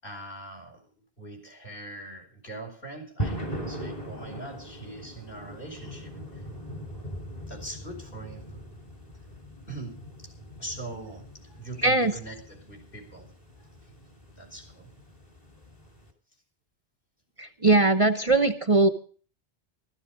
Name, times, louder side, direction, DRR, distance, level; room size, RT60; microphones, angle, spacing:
voice 1, 0.0-6.5 7.5-8.6 9.7-10.3 10.6-13.3 13.6-14.1 14.4-14.9, right 2 dB, 55° left, 2 dB, 5.3 m, -42 dB
sound 1, 3.2-16.1, right 1 dB, 35° left, 3.3 m, -40 dB
voice 2, 11.8-12.1 17.4-18.9, right 2 dB, 35° right, 9 dB, 0.9 m, -21 dB
14.5 x 14.0 x 5.0 m, 0.41 s
omnidirectional pair, 1.1 m